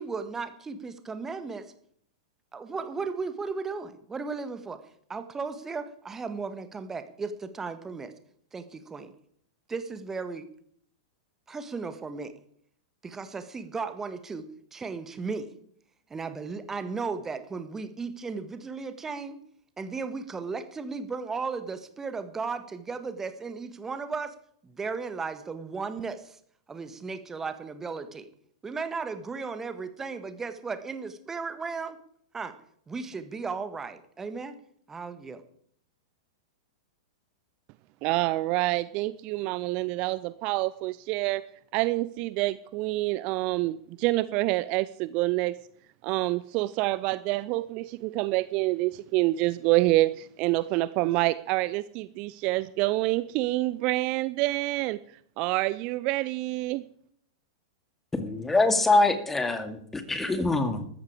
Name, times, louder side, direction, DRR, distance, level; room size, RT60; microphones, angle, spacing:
voice 1, 0.0-1.7 2.5-4.8 5.1-8.1 8.5-9.1 9.7-10.5 11.5-12.3 13.0-15.5 16.1-19.4 19.8-24.3 24.6-26.4 26.7-28.3 28.6-32.0 32.3-32.6 32.9-34.5 34.9-35.4, right 4 dB, 15° right, 10 dB, 1.6 m, -35 dB
voice 2, 38.0-41.4 41.7-45.5 46.0-55.0 55.4-56.8, right 19 dB, 40° right, 16 dB, 0.5 m, -27 dB
voice 3, 58.2-60.9, left 2 dB, 10° left, 9 dB, 2.3 m, -24 dB
14.5 x 13.5 x 5.0 m, 0.64 s
figure-of-eight pair, 100°, 3 cm